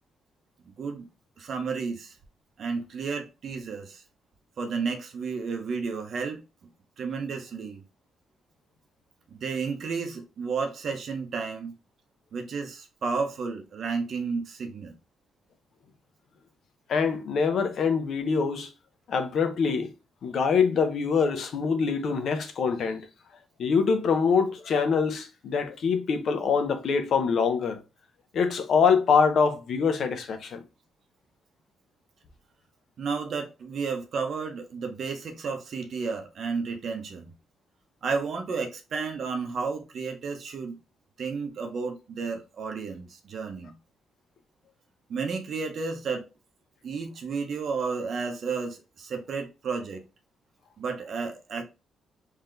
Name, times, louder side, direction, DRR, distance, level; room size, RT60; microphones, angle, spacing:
voice 1, 1.4-2.2 2.6-4.0 4.6-6.4 7.0-7.8 9.3-11.7 12.3-14.9 33.0-37.3 38.0-40.8 41.2-43.7 45.1-46.3 46.8-50.0 50.8-51.6, right 5 dB, 55° right, 0.7 m, -32 dB
voice 2, 16.9-18.7 19.1-19.9 20.2-23.1 23.6-27.8 28.3-30.6, left 5 dB, 60° left, 0.7 m, -24 dB
3.8 x 2.7 x 3.2 m
cardioid pair, 135°, 0 cm